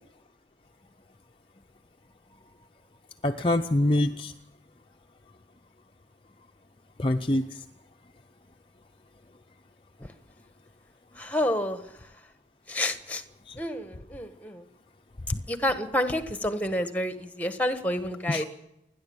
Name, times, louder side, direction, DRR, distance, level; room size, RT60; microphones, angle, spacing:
voice 1, 3.2-4.3 7.0-7.6 13.5-13.6 15.3-15.4 18.3-18.4, left 1 dB, 30° left, 4 dB, 0.7 m, -25 dB
voice 2, 11.2-11.8 12.7-13.2 13.6-14.6 15.5-18.5, left 1 dB, 10° left, 9 dB, 1.4 m, -29 dB
29.5 x 11.0 x 8.8 m, 0.89 s
head